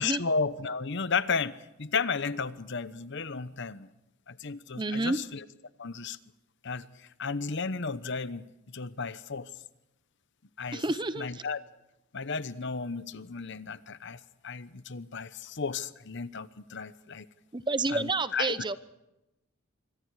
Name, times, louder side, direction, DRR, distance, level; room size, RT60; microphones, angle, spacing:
voice 1, 0.0-3.9 4.3-5.4 5.8-6.2 6.6-8.4 8.7-9.5 10.6-10.8 11.2-11.6 12.1-17.3 17.9-18.5, left 5 dB, 55° left, 15 dB, 0.9 m, -33 dB
voice 2, 4.8-5.2 10.7-11.4 17.5-18.8, right 2 dB, 20° right, 14 dB, 0.7 m, -29 dB
27.0 x 24.0 x 4.8 m, 0.95 s
head